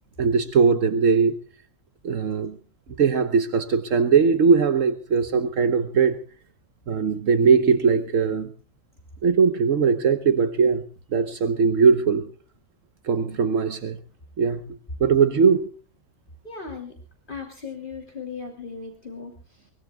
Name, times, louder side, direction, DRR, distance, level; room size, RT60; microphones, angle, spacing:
voice 1, 0.2-1.4 2.0-2.5 3.0-6.2 6.9-8.5 9.2-10.8 11.1-12.3 13.0-14.0 14.4-15.7, right 5 dB, 70° right, 1.4 m, -20 dB
voice 2, 16.4-17.0 17.3-19.7, left 5 dB, 35° left, 3.0 m, -37 dB
23.0 x 21.5 x 2.3 m
omnidirectional pair, 1.4 m